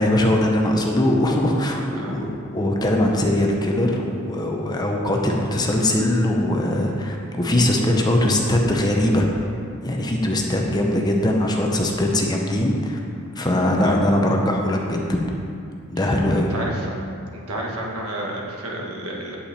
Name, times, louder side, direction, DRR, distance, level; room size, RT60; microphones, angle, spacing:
voice 1, 0.0-9.3 9.8-13.0 13.4-15.2 15.9-16.5, left 1 dB, 20° left, 1 dB, 0.8 m, -21 dB
voice 2, 2.0-2.3 13.8-14.0 16.0-16.1 16.5-16.9 17.3-19.4, right 1 dB, 85° right, -2 dB, 1.6 m, -31 dB
8.6 x 8.5 x 4.3 m, 2.4 s
head